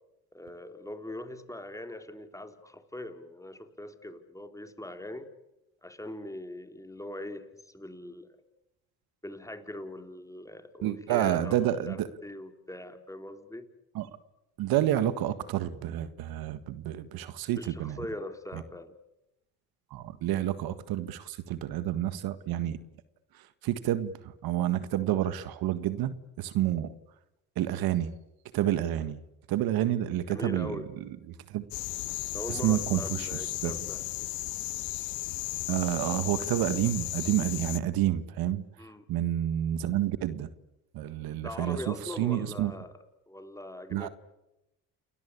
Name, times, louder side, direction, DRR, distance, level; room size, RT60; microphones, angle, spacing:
voice 1, 0.3-5.3 5.8-8.3 9.2-13.7 17.6-19.0 30.3-30.9 32.3-34.0 38.8-39.1 41.4-42.9 43.3-44.1, left 1 dB, 10° left, 7 dB, 3.9 m, -41 dB
voice 2, 10.8-12.1 13.9-14.1 14.6-18.0 18.5-18.6 19.9-22.8 23.3-26.9 27.5-28.1 28.5-29.2 29.5-31.6 32.5-33.7 35.7-38.6 39.1-40.5 40.9-42.7 43.9-44.1, right 12 dB, 75° right, 13 dB, 1.8 m, -29 dB
sound 1, 31.7-37.8, left 17 dB, 70° left, 1.0 m, -35 dB
29.5 x 20.5 x 8.5 m, 0.90 s
supercardioid pair, 65°, 37 cm